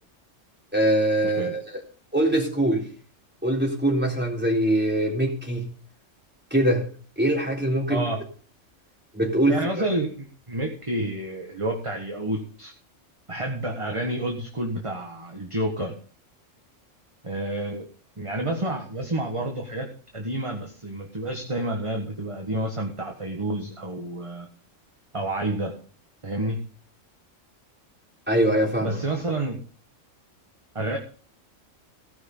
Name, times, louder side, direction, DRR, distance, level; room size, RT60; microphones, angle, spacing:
voice 1, 0.7-1.6 2.1-2.9 3.4-5.6 6.5-6.9 7.2-8.0 9.1-9.7 28.3-29.0, right 1 dB, 10° right, -1 dB, 3.8 m, -22 dB
voice 2, 7.9-8.2 9.5-12.7 13.3-15.9 17.2-17.8 18.2-24.5 25.1-25.7 26.2-26.6 28.8-29.6 30.7-31.0, right 1 dB, 25° right, 2 dB, 1.6 m, -29 dB
17.0 x 6.3 x 5.5 m, 0.41 s
omnidirectional pair, 1.3 m